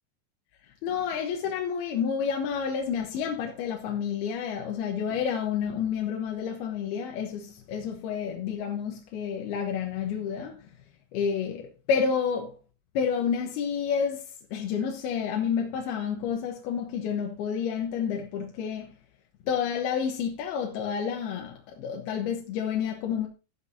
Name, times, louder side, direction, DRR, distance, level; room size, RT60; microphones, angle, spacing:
voice 1, 0.8-10.7 11.1-12.6 12.9-19.0 19.5-23.3, left 7 dB, 85° left, 3.1 m, -30 dB
12.5 x 12.0 x 2.8 m
omnidirectional pair, 4.4 m